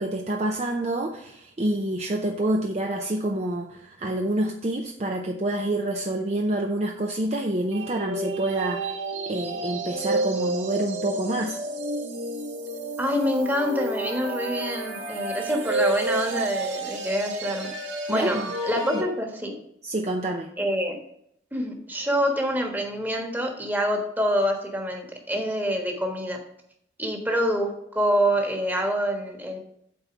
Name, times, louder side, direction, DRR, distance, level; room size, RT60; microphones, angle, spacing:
voice 1, 0.0-8.9 9.3-11.6 18.1-19.0 19.8-20.5, right 1 dB, 35° right, 2 dB, 0.6 m, -27 dB
sound 1, 7.7-19.0, right 2 dB, 70° right, 2.0 m, -30 dB
voice 2, 13.0-17.7 18.1-18.4 18.6-19.6 20.6-21.0 21.5-26.4 27.0-29.6, equal, 10° right, 1 dB, 1.3 m, -26 dB
8.5 x 4.3 x 6.0 m, 0.73 s
head